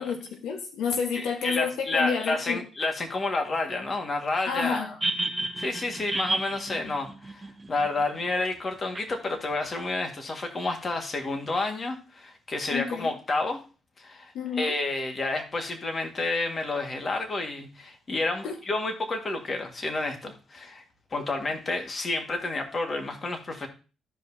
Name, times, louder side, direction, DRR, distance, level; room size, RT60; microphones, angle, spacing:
voice 1, 0.0-2.6 4.5-4.9 12.7-13.1 14.3-14.8 18.4-18.6, left 6 dB, 85° left, 1.3 m, -30 dB
voice 2, 1.1-4.9 5.6-13.6 14.0-14.3 14.6-20.8 21.1-23.7, left 2 dB, 35° left, 1.8 m, -30 dB
sound 1, 5.0-8.0 8.9-9.0, right 2 dB, 20° right, 0.8 m, -31 dB
14.0 x 5.1 x 2.8 m
cardioid pair, 90°, 0 cm